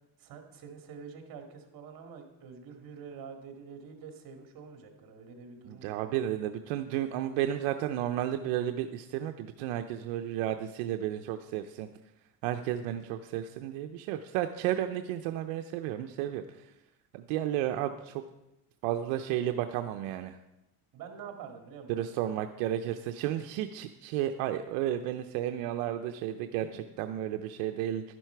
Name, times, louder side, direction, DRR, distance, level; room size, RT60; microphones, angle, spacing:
voice 1, 0.2-6.2 20.9-22.3 26.5-26.8, right 6 dB, 50° right, 4 dB, 2.2 m, -47 dB
voice 2, 5.7-11.9 12.4-16.4 17.1-18.2 18.8-20.4 21.9-26.7 27.0-28.0, right 12 dB, 85° right, 7 dB, 0.7 m, -32 dB
11.5 x 10.5 x 4.6 m, 0.93 s
cardioid pair, 140°, 43 cm